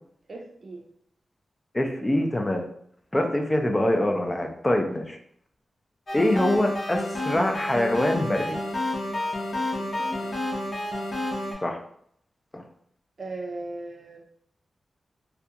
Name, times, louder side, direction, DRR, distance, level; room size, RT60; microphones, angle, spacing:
voice 1, 0.3-0.8 9.8-10.3 13.2-14.2, right 2 dB, 55° right, 2 dB, 0.5 m, -38 dB
voice 2, 1.7-2.6 3.1-5.2 6.1-8.6 11.6-11.8 12.5-12.6, left 1 dB, 20° left, 3 dB, 0.4 m, -24 dB
sound 1, 6.1-11.5, left 1 dB, 60° left, 0.7 m, -30 dB
2.4 x 2.2 x 2.8 m, 0.67 s
cardioid pair, 75°, 0 cm